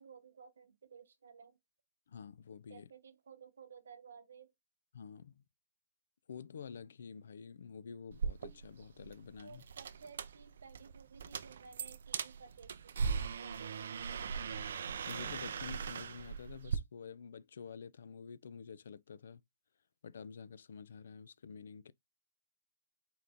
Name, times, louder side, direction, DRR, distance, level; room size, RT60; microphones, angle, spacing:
voice 1, 0.0-1.6 2.7-4.5 9.4-13.1 13.4-14.3, right 6 dB, 90° right, 0.8 m, -56 dB
voice 2, 2.1-2.9 4.9-5.4 6.3-9.6 15.1-19.4 20.0-21.9, left 6 dB, 65° left, 0.3 m, -49 dB
sound 1, 8.1-16.8, right 6 dB, 60° right, 0.4 m, -40 dB
4.4 x 2.5 x 3.5 m
hypercardioid pair, 180°, 0 cm